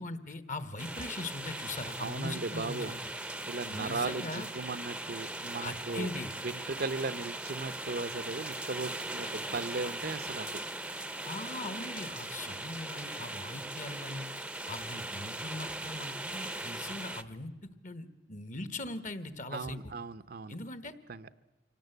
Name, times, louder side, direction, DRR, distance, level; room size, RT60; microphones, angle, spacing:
voice 1, 0.0-3.0 3.7-4.5 5.6-6.3 11.2-14.3 14.7-17.5 17.8-19.9 20.5-20.9, left 2 dB, 45° left, 13 dB, 1.4 m, -40 dB
sound 1, 0.8-17.2, right 2 dB, 5° right, 0.7 m, -39 dB
voice 2, 2.0-2.9 3.5-6.1 6.4-10.5 12.5-12.7 19.5-20.5 21.1-21.3, right 3 dB, 55° right, 13 dB, 0.7 m, -37 dB
25.0 x 18.0 x 8.0 m, 1.2 s
head